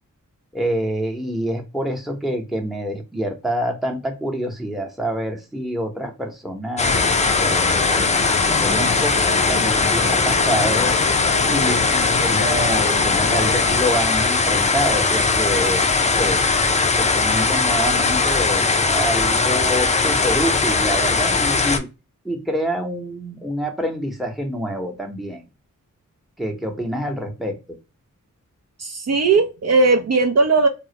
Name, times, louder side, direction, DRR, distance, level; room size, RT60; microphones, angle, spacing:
voice 1, 0.5-8.1 8.5-9.2 9.5-10.9 11.4-15.9 16.2-16.4 17.0-21.9 22.2-25.4 26.4-27.6, equal, ahead, 2 dB, 0.8 m, -26 dB
sound 1, 6.8-21.8, left 4 dB, 25° left, 0.4 m, -19 dB
sound 2, 6.9-13.8, left 4 dB, 90° left, 0.6 m, -29 dB
voice 2, 28.8-30.7, right 3 dB, 55° right, 4 dB, 0.5 m, -17 dB
2.3 x 2.1 x 2.7 m, 0.28 s
cardioid pair, 60°, 32 cm